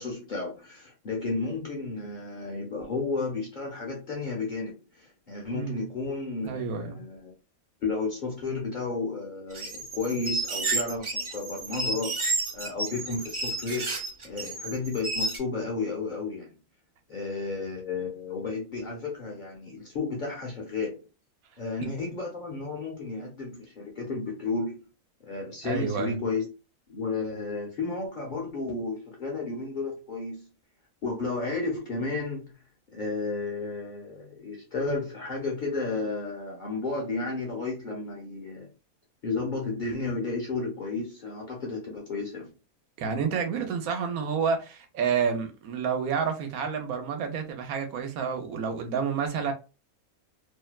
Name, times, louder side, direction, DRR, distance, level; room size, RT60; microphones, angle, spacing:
voice 1, 0.0-7.3 7.8-16.5 17.1-21.0 21.6-24.9 25.2-26.4 26.9-30.5 31.0-32.5 32.9-38.7 39.2-42.5, left 3 dB, 45° left, 0.6 m, -32 dB
voice 2, 6.4-7.0 25.6-26.2 43.0-49.5, right 6 dB, 85° right, 1.1 m, -29 dB
sound 1, 9.5-15.4, right 2 dB, 50° right, 0.3 m, -31 dB
2.6 x 2.1 x 2.2 m
omnidirectional pair, 1.5 m